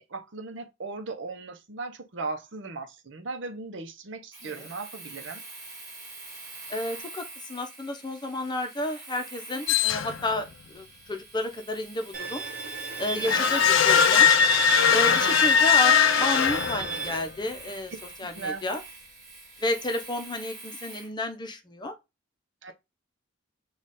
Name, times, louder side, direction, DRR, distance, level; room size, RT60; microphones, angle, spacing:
voice 1, 0.0-5.4 13.0-13.5 15.1-15.3 18.3-18.6 22.6-22.7, right 3 dB, 65° right, 0.8 m, -37 dB
Domestic sounds home sounds, 4.3-21.1, right 2 dB, 20° right, 2.4 m, -45 dB
voice 2, 6.7-7.2 7.5-12.4 13.0-14.3 14.9-17.9 18.2-18.8 19.6-21.9, left 2 dB, 20° left, 0.7 m, -31 dB
sound 1, 9.7-10.4 13.3-17.2, left 8 dB, 75° left, 0.5 m, -20 dB
Bowed string instrument, 12.1-17.2, right 5 dB, 45° right, 1.0 m, -33 dB
4.9 x 2.4 x 4.1 m
head